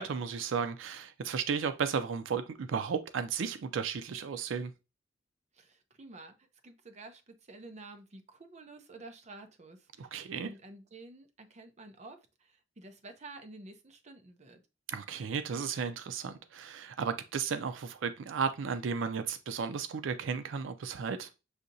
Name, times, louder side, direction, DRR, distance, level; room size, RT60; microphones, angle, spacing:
voice 1, 0.0-4.7 10.0-10.5 14.9-21.3, right 6 dB, 90° right, 0.4 m, -34 dB
voice 2, 5.5-10.2 10.4-14.6, right 2 dB, 35° right, 0.6 m, -51 dB
6.4 x 2.7 x 2.6 m
head